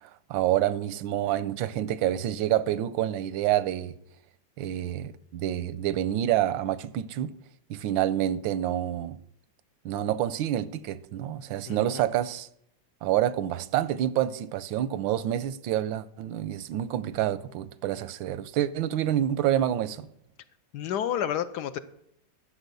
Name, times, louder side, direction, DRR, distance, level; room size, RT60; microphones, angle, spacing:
voice 1, 0.0-3.9 4.6-7.4 7.7-9.2 9.8-12.5 13.0-20.0, right 12 dB, 90° right, 1.4 m, -28 dB
voice 2, 11.7-12.0 20.7-21.8, left 9 dB, 70° left, 1.1 m, -30 dB
12.0 x 7.6 x 6.8 m
omnidirectional pair, 2.1 m